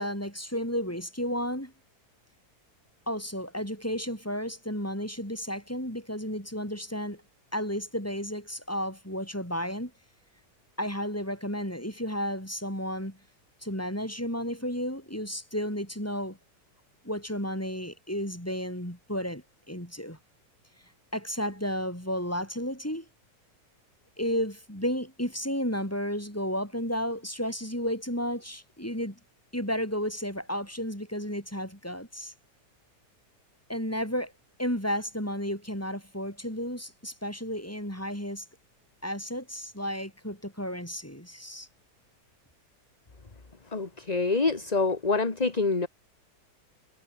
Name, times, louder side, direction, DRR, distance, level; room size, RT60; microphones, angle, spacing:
voice 1, 0.0-1.7 3.1-7.2 7.5-9.9 10.8-13.2 13.6-16.4 17.0-20.2 21.1-23.0 24.2-29.2 29.5-32.3 33.7-34.3 34.6-38.4 39.0-41.7, equal, 10° left, 8.1 m, -32 dB
voice 2, 43.7-45.9, left 3 dB, 25° left, 1.7 m, -26 dB
omnidirectional pair, 1.8 m